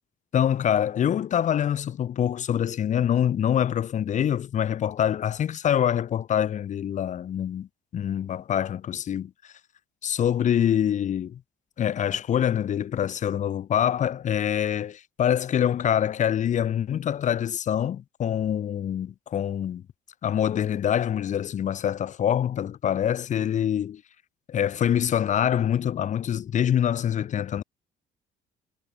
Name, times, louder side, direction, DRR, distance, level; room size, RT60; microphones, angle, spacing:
voice 1, 0.3-9.3 10.0-11.4 11.8-19.8 20.2-24.0 24.5-27.6, left 9 dB, 45° left, 0.9 m, -25 dB
cardioid pair, 110°, 17 cm